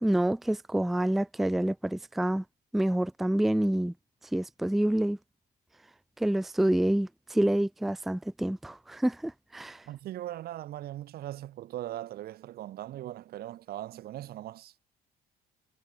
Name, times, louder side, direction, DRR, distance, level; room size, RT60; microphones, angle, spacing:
voice 1, 0.0-2.4 2.7-3.9 4.3-5.2 6.2-9.8, right 1 dB, ahead, 0.4 m, -27 dB
voice 2, 9.9-14.7, right 13 dB, 65° right, 1.8 m, -39 dB
cardioid pair, 110°, 17 cm